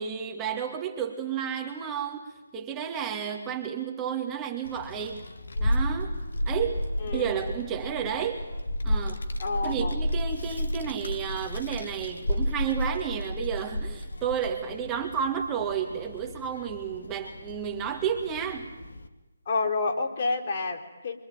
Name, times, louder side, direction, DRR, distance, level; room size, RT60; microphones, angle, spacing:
voice 1, 0.0-5.2 5.6-6.2 6.5-6.8 7.1-8.4 8.8-9.3 9.6-18.7, right 8 dB, 15° right, 2 dB, 2.3 m, -31 dB
Child speech kid speaking, 4.6-19.1, left 1 dB, 65° left, 2.5 m, -32 dB
voice 2, 7.0-7.5 9.4-10.0 19.5-21.2, left 3 dB, 45° left, 2 dB, 4.1 m, -29 dB
26.0 x 24.5 x 9.3 m, 1.1 s
figure-of-eight pair, 145°, 0 cm